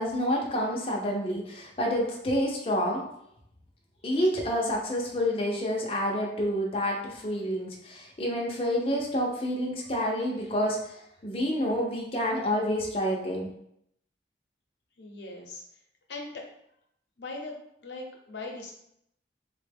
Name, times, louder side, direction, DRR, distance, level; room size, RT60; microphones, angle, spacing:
voice 1, 0.0-3.0 4.0-13.5, equal, 30° left, -2 dB, 0.5 m, -28 dB
voice 2, 15.0-15.6 16.1-16.4 17.2-17.5 17.8-18.7, left 3 dB, 85° left, 1 dB, 0.6 m, -39 dB
3.7 x 2.1 x 3.3 m, 0.75 s
head